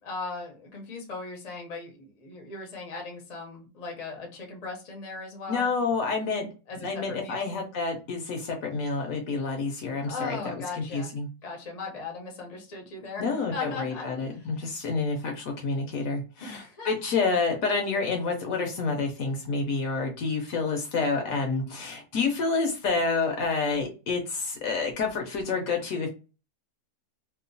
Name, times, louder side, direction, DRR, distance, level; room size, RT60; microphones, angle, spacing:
voice 1, 0.0-6.0 6.7-7.5 10.0-11.1 11.4-14.1 14.3-14.5 16.4-16.9, left 3 dB, 45° left, 1 dB, 0.5 m, -38 dB
voice 2, 5.5-6.5 6.8-11.3 13.2-26.1, left 4 dB, 70° left, 3 dB, 0.9 m, -28 dB
2.9 x 2.1 x 2.6 m, 0.32 s
omnidirectional pair, 1.7 m